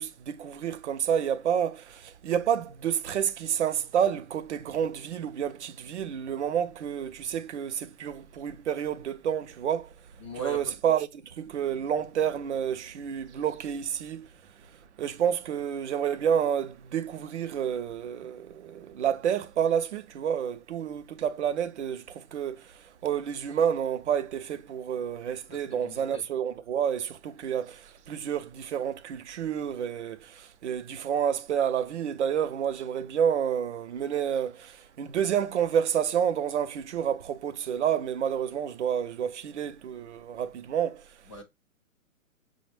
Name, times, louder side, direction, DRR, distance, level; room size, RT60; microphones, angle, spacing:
voice 1, 0.0-9.9 10.4-14.3 15.0-41.1, right 8 dB, 55° right, 0.5 m, -29 dB
voice 2, 10.2-10.7 25.5-26.2 41.3-41.4, right 2 dB, 25° left, 0.4 m, -40 dB
4.9 x 2.1 x 3.1 m
hypercardioid pair, 155°, 42 cm